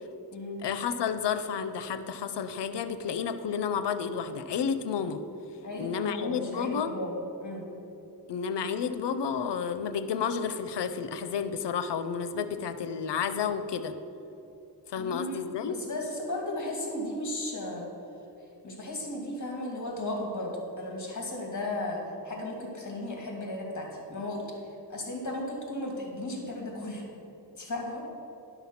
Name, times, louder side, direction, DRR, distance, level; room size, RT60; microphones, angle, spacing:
voice 1, 0.6-5.2 5.8-6.9 8.3-13.9 14.9-15.8, left 6 dB, 90° left, 10 dB, 0.6 m, -31 dB
voice 2, 5.6-7.6 15.0-17.9 18.6-27.0 27.6-28.0, left 1 dB, 45° left, -1 dB, 2.4 m, -35 dB
11.0 x 6.0 x 5.8 m, 2.9 s
wide cardioid pair, 80°, 41 cm